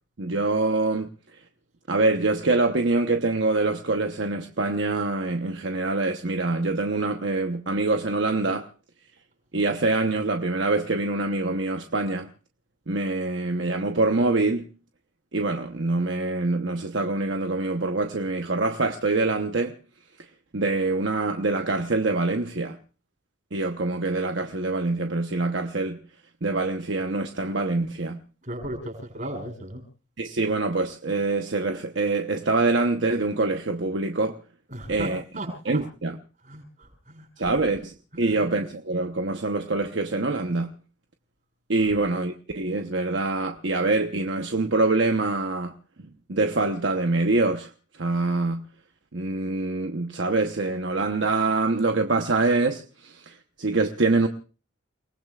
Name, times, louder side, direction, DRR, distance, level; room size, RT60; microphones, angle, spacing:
voice 1, 0.2-1.1 1.9-8.7 9.5-12.3 12.9-14.7 15.3-19.8 20.5-22.8 23.5-26.0 26.4-28.2 30.2-34.4 34.9-35.2 35.6-36.2 37.4-40.7 41.7-45.7 46.3-47.7 48.0-48.6 49.1-54.3, right 3 dB, 70° right, 1.0 m, -25 dB
voice 2, 28.4-29.8 34.7-35.1 35.3-35.8 36.4-37.2 38.1-38.5 41.9-42.0, right 1 dB, 40° right, 6.5 m, -36 dB
29.5 x 19.0 x 2.4 m
head